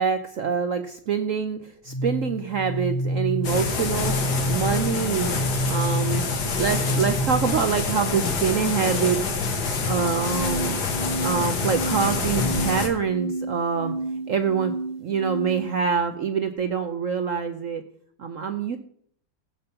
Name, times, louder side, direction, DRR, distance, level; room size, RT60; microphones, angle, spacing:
voice 1, 0.0-5.3 5.6-6.2 6.6-9.4 9.9-10.8 11.2-14.0 14.3-14.7 15.0-17.8 18.2-18.8, right 6 dB, 70° right, 8 dB, 0.7 m, -25 dB
sound 1, 1.9-7.8 9.9-15.8, right 1 dB, 25° left, 1.0 m, -30 dB
sound 2, 3.4-12.9, left 4 dB, 55° left, 1.9 m, -27 dB
15.5 x 5.3 x 5.6 m, 0.63 s
omnidirectional pair, 2.2 m